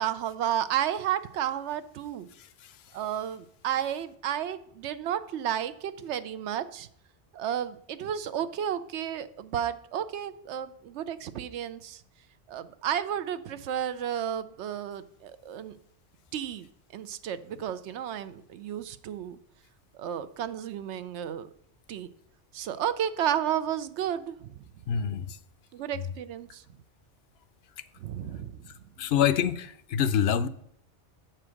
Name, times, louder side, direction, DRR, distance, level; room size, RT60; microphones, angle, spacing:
voice 1, 0.0-2.3 2.9-6.9 7.3-12.0 12.5-15.8 16.3-16.7 16.9-19.4 19.9-21.5 21.9-22.1 22.5-24.6 25.7-26.6 28.0-28.6, right 10 dB, 80° right, 0.9 m, -32 dB
voice 2, 24.9-25.4 29.0-30.5, left 8 dB, 70° left, 0.8 m, -26 dB
7.6 x 4.5 x 6.2 m
omnidirectional pair, 1.2 m